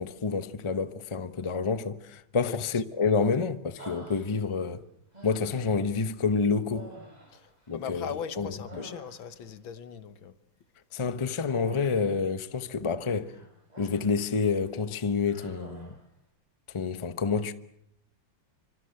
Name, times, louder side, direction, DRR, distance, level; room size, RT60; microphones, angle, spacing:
voice 1, 0.0-4.8 5.2-6.9 7.7-8.1 8.4-8.9 10.9-13.3 13.8-15.9 16.7-17.5, left 5 dB, 25° left, 0.7 m, -28 dB
Human voice, 3.8-4.7 5.1-5.9 6.7-8.1 8.4-9.5 11.5-12.2 13.2-14.2 14.6-14.8 15.2-16.0, right 1 dB, 20° right, 7.0 m, -48 dB
voice 2, 7.3-10.3, left 8 dB, 85° left, 2.1 m, -39 dB
26.0 x 25.5 x 7.8 m
omnidirectional pair, 2.1 m